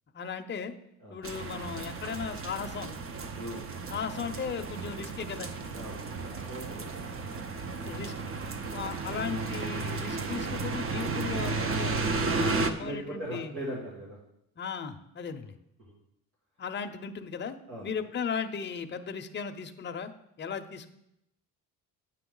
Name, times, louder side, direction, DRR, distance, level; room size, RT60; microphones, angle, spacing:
voice 1, 0.1-0.7 1.1-2.9 3.9-5.5 7.8-8.2 8.7-13.5 14.6-15.5 16.6-17.6 17.8-20.1 20.4-20.9, left 6 dB, 30° left, 6 dB, 0.6 m, -36 dB
sound 1, 1.2-12.7, right 3 dB, 40° right, 0.7 m, -33 dB
voice 2, 6.3-6.9 8.6-8.8 12.5-14.2 17.7-17.9, right 1 dB, 85° right, -6 dB, 2.3 m, -39 dB
8.9 x 7.0 x 3.8 m, 0.81 s
cardioid pair, 115°, 36 cm